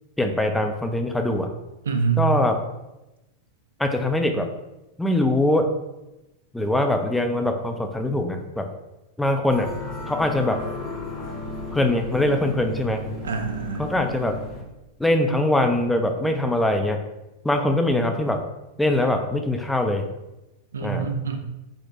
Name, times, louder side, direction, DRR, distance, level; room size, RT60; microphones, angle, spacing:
voice 1, 0.2-1.5 2.2-2.6 3.8-4.5 5.0-5.7 6.5-8.7 9.2-9.7 10.1-10.6 11.7-13.0 13.8-14.4 15.0-17.0 17.4-18.4 18.8-20.1 20.8-21.1, left 1 dB, 5° left, 5 dB, 0.3 m, -22 dB
voice 2, 1.9-2.3 13.2-13.8 20.7-21.4, right 6 dB, 65° right, 5 dB, 0.4 m, -25 dB
sound 1, 9.5-14.6, left 2 dB, 60° left, 1.1 m, -34 dB
4.3 x 2.1 x 3.0 m, 0.97 s
figure-of-eight pair, 90°, 0 cm